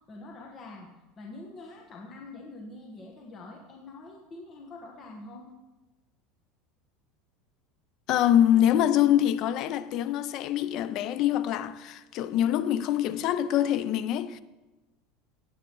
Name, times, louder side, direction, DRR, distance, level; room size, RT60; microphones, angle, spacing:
voice 1, 0.1-0.9 1.2-5.5, left 2 dB, 30° left, 1.3 m, -45 dB
voice 2, 8.1-14.4, left 11 dB, 50° left, 0.5 m, -24 dB
17.5 x 8.3 x 3.1 m
supercardioid pair, 135°, 0 cm